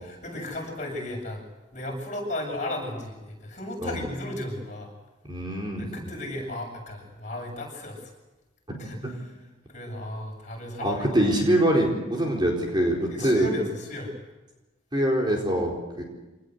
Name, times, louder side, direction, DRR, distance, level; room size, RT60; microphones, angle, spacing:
voice 1, 0.0-1.4 1.7-4.9 5.8-8.1 8.8-11.3 13.1-14.1, left 1 dB, 35° left, 1 dB, 7.9 m, -35 dB
voice 2, 5.3-6.1 8.7-8.8 10.8-13.5 14.9-16.0, right 1 dB, 20° right, -1 dB, 4.4 m, -24 dB
26.5 x 19.5 x 8.2 m, 1.1 s
head